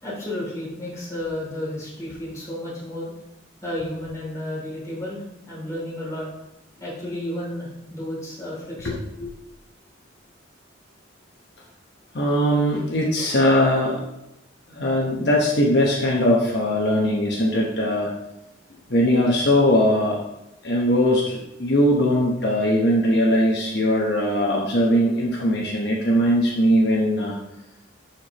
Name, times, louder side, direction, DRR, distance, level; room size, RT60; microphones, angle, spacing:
voice 1, 0.0-3.1 3.6-6.3 6.8-9.0, left 1 dB, 15° left, -7 dB, 2.9 m, -32 dB
voice 2, 12.1-14.0 14.7-18.1 18.9-20.2 20.6-27.3, equal, 60° left, -2 dB, 1.0 m, -20 dB
11.5 x 4.5 x 3.0 m, 0.89 s
head